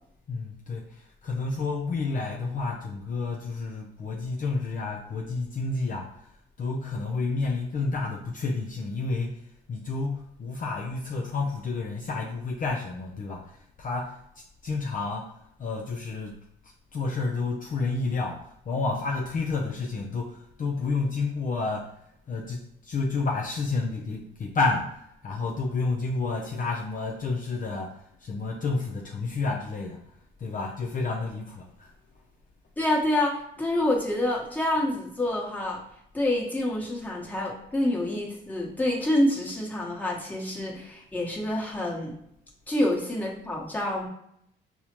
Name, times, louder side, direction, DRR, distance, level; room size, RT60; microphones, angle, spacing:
voice 1, 0.3-6.3 6.6-9.4 9.7-15.3 15.6-16.4 16.6-21.9 22.3-25.0 25.2-30.0 30.4-31.9, left 3 dB, 40° left, 0 dB, 0.5 m, -30 dB
voice 2, 32.8-35.8 36.1-42.1 42.7-44.1, left 1 dB, 10° left, -3 dB, 1.1 m, -27 dB
5.3 x 2.1 x 3.0 m, 0.75 s
cardioid pair, 90°, 20 cm